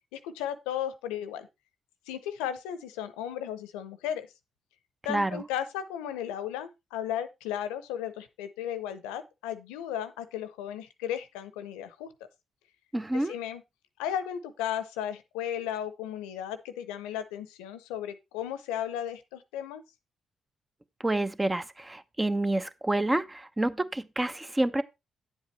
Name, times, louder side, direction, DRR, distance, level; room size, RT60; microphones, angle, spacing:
voice 1, 0.1-1.5 2.1-4.3 5.0-12.1 13.1-13.6 14.0-19.8, left 10 dB, 80° left, 0.7 m, -35 dB
voice 2, 5.1-5.4 12.9-13.3 21.0-24.8, right 1 dB, 20° right, 0.9 m, -28 dB
9.5 x 7.7 x 3.2 m
hypercardioid pair, 40°, 0 cm